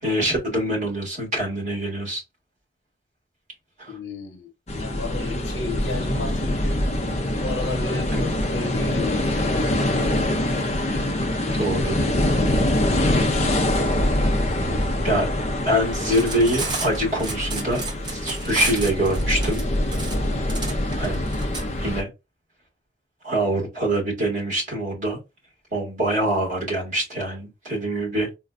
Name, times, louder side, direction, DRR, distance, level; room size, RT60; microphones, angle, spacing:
voice 1, 0.0-2.2 3.8-3.9 7.9-8.1 11.5-12.1 15.0-15.3 15.6-17.8 18.1-19.6 21.0-21.2 21.8-22.1 23.2-25.2 25.7-28.3, right 1 dB, 40° right, 1.6 m, -24 dB
voice 2, 3.9-4.5 4.7-6.8 7.4-9.5, left 2 dB, 75° left, 1.0 m, -32 dB
sound 1, 4.7-22.0, left 1 dB, 35° left, 0.5 m, -24 dB
Cutlery silverware, 16.0-21.6, right 3 dB, 25° right, 0.7 m, -31 dB
4.0 x 2.3 x 2.4 m
head